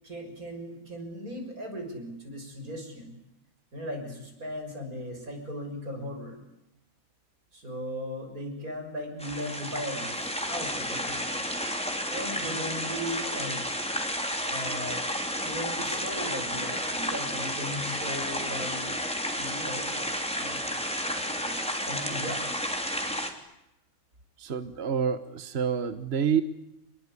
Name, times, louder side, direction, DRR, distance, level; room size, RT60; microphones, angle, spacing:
voice 1, 0.0-3.2 3.7-6.4 7.5-11.4 12.1-13.6 14.4-15.0 15.4-19.1 19.3-22.5, equal, 80° right, 4 dB, 7.0 m, -38 dB
sound 1, 9.2-23.3, equal, 5° left, 3.2 m, -31 dB
voice 2, 24.4-26.4, right 7 dB, 50° right, 11 dB, 1.4 m, -28 dB
27.5 x 21.5 x 9.7 m, 0.87 s
omnidirectional pair, 1.5 m